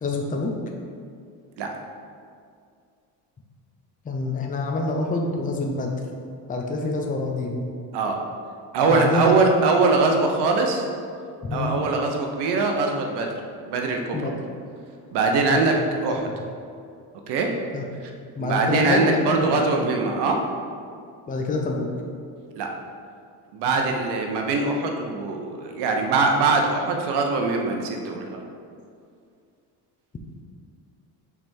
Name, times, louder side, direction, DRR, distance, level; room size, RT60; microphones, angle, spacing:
voice 1, 0.0-0.5 4.0-6.0 6.5-7.7 8.9-9.3 11.4-11.7 14.1-14.4 15.5-16.2 17.7-18.0 18.4-19.6 21.3-21.9, left 2 dB, 20° left, 1 dB, 0.6 m, -26 dB
voice 2, 8.7-10.8 11.5-13.3 13.6-14.3 15.1-15.8 16.0-16.2 17.3-17.5 18.4-20.4 22.6-22.7 23.5-28.4, right 3 dB, 75° right, 2 dB, 0.9 m, -22 dB
6.0 x 3.6 x 4.4 m, 2.3 s
cardioid pair, 115°, 41 cm